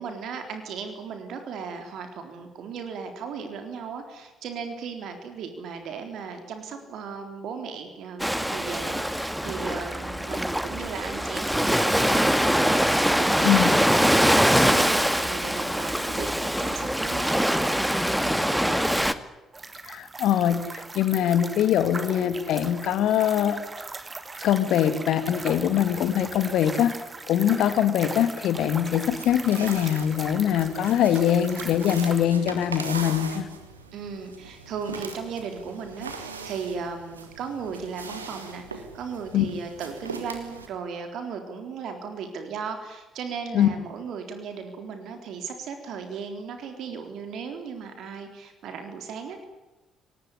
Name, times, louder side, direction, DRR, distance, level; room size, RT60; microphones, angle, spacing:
voice 1, 0.0-19.1 33.9-49.4, right 5 dB, 60° right, 6 dB, 3.8 m, -36 dB
Ocean, 8.2-19.1, equal, ahead, 2.1 m, -23 dB
sound 1, 19.5-32.3, right 3 dB, 25° right, 3.1 m, -39 dB
voice 2, 19.9-23.6 24.4-26.9 27.3-33.5 39.3-39.4 43.5-43.7, left 10 dB, 65° left, 11 dB, 2.4 m, -23 dB
sound 2, 29.0-40.7, right 4 dB, 90° right, 2.2 m, -40 dB
24.5 x 19.5 x 10.0 m, 1.1 s
figure-of-eight pair, 45°, 0 cm